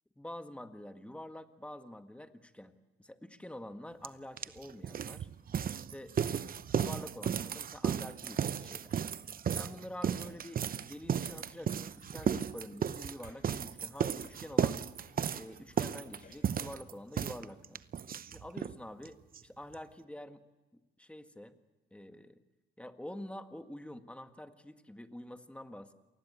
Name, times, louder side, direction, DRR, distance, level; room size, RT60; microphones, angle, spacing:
voice 1, 0.2-2.7 3.0-5.3 5.7-6.1 6.7-9.0 9.6-14.8 15.3-17.8 18.3-20.4 20.7-21.6 21.9-22.4 22.8-25.9, left 1 dB, 5° left, 7 dB, 1.8 m, -47 dB
sound 1, 4.0-4.1 4.4-18.8 19.0-19.1 19.3-19.4 19.7-19.8, right 8 dB, 45° right, 0.8 m, -34 dB
sound 2, 10.2-10.4 10.7-16.5, left 4 dB, 45° left, 7.1 m, -62 dB
27.5 x 20.0 x 8.3 m, 1.1 s
cardioid pair, 90°, 20 cm